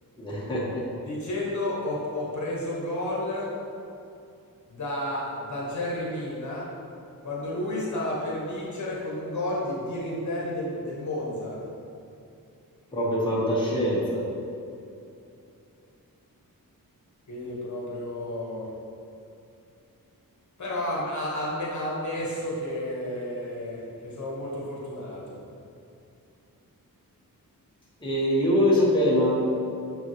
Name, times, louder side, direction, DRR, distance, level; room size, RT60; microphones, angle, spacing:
voice 1, 0.2-0.8 12.9-14.2 28.0-29.3, equal, 15° left, -7 dB, 1.2 m, -23 dB
voice 2, 1.0-3.5 4.7-6.7 7.2-11.6 17.3-18.7 20.6-25.4, left 1 dB, 55° left, -5 dB, 1.4 m, -31 dB
6.8 x 5.5 x 3.1 m, 2.6 s
wide cardioid pair, 170°, 35 cm